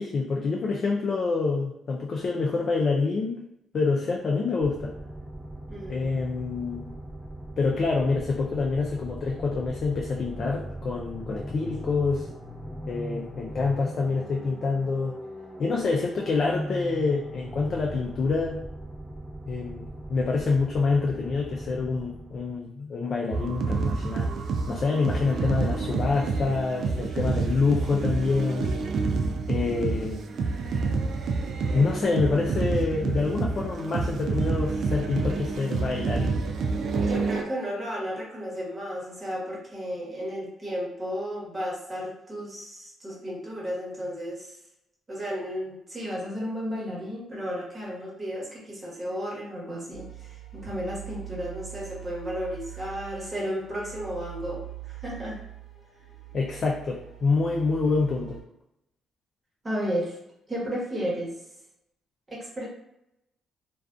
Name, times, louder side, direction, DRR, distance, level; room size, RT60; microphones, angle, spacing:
voice 1, 0.0-3.4 3.7-4.9 5.9-6.9 7.6-12.3 12.9-15.2 15.6-18.6 19.5-24.3 24.6-28.8 29.5-30.3 31.7-36.4 56.3-58.4, left 4 dB, 50° left, -1 dB, 0.4 m, -26 dB
sound 1, 4.6-22.6, equal, 5° left, 0.7 m, -39 dB
voice 2, 5.7-6.2 37.0-44.5 45.1-54.6 54.9-55.4 59.6-60.1 60.5-61.3 62.3-62.7, equal, 25° right, -5 dB, 1.1 m, -33 dB
sound 2, 23.3-37.4, right 4 dB, 60° right, 0.3 m, -28 dB
sound 3, 49.9-58.4, right 18 dB, 80° left, 1.0 m, -43 dB
2.3 x 2.3 x 2.5 m, 0.82 s
cardioid pair, 90°, 0 cm